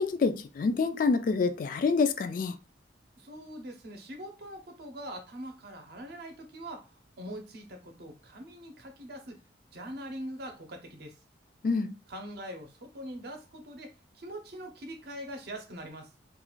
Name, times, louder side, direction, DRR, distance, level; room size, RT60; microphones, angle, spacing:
voice 1, 0.0-2.6 11.6-11.9, left 4 dB, 45° left, 0.3 m, -27 dB
voice 2, 3.2-6.9 7.2-9.4 9.7-11.1 12.1-16.1, right 1 dB, 60° right, 0.7 m, -42 dB
2.4 x 2.4 x 3.0 m
head